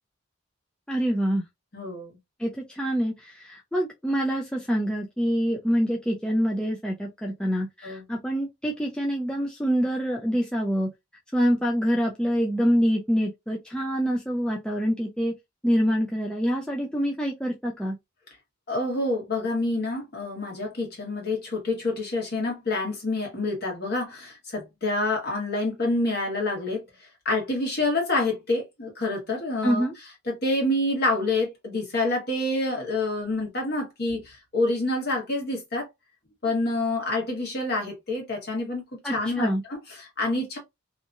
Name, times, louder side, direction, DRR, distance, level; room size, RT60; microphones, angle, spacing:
voice 1, 0.9-1.4 2.4-10.9 11.3-15.3 15.6-17.9 29.6-29.9 39.0-39.6, equal, 5° left, 0.4 m, -26 dB
voice 2, 1.7-2.1 7.8-8.0 18.7-26.8 27.2-29.9 30.3-35.9 36.4-38.8 39.1-40.6, left 2 dB, 45° left, 1.3 m, -27 dB
2.9 x 2.6 x 2.3 m
head